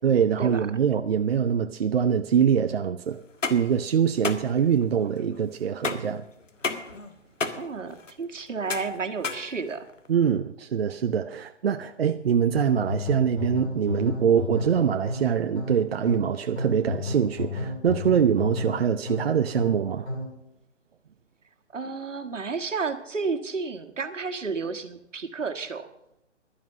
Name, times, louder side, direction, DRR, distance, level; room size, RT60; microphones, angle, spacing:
voice 1, 0.0-3.2 3.5-6.2 10.1-20.1, right 8 dB, 55° right, 0.7 m, -24 dB
sound 1, 3.2-10.1, left 4 dB, 85° left, 1.7 m, -34 dB
voice 2, 7.5-9.9 21.7-25.9, right 4 dB, 80° right, 1.8 m, -31 dB
sound 2, 12.6-20.4, left 2 dB, 60° left, 4.3 m, -33 dB
11.5 x 10.5 x 6.7 m
figure-of-eight pair, 145°, 37 cm